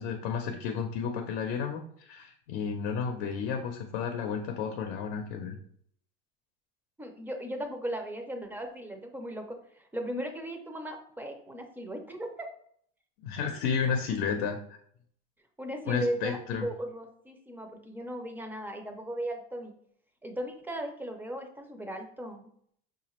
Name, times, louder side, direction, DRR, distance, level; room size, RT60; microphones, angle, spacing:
voice 1, 0.0-5.6 13.2-14.6 15.9-16.7, left 6 dB, 90° left, 5 dB, 0.6 m, -32 dB
voice 2, 7.0-12.5 15.6-19.7 20.2-22.5, equal, 5° right, 4 dB, 0.3 m, -37 dB
4.9 x 2.4 x 2.9 m, 0.65 s
cardioid pair, 140°, 31 cm